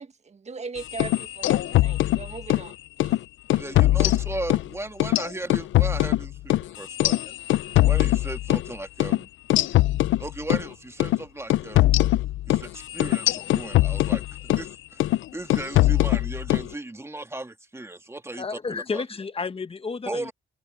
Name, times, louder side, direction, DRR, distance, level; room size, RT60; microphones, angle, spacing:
voice 1, 0.0-2.7 3.0-3.1, right 4 dB, 35° right, 1.8 m, -39 dB
sound 1, 0.9-2.7 3.0-3.2 3.5-4.7 5.0-8.7 9.0-9.2 9.5-10.7 11.0-11.2 11.5-14.7 15.0-15.2 15.5-16.7, left 15 dB, 75° left, 0.6 m, -22 dB
voice 2, 3.5-7.3 7.8-9.3 10.2-11.9 12.5-15.0 15.3-19.0 20.1-20.3, right 2 dB, 15° right, 2.1 m, -36 dB
voice 3, 18.4-20.3, left 4 dB, 30° left, 1.3 m, -31 dB
cardioid pair, 90°, 20 cm